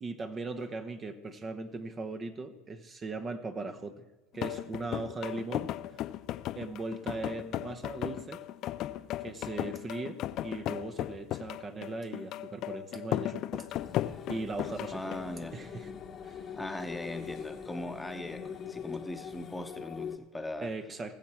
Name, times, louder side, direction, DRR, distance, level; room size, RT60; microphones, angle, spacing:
voice 1, 0.0-4.0 4.3-5.7 6.5-8.4 9.2-13.8 14.3-15.2 15.5-15.9 16.2-16.5 20.6-21.2, right 3 dB, 30° right, 8 dB, 0.9 m, -39 dB
sound 1, 4.3-15.3, left 13 dB, 55° left, 0.5 m, -36 dB
sound 2, 13.7-20.2, left 7 dB, 40° left, 1.0 m, -43 dB
voice 2, 14.9-15.6 16.5-20.7, left 2 dB, 10° left, 6 dB, 1.0 m, -39 dB
19.5 x 7.3 x 4.4 m, 1.1 s
hypercardioid pair, 85°, 0 cm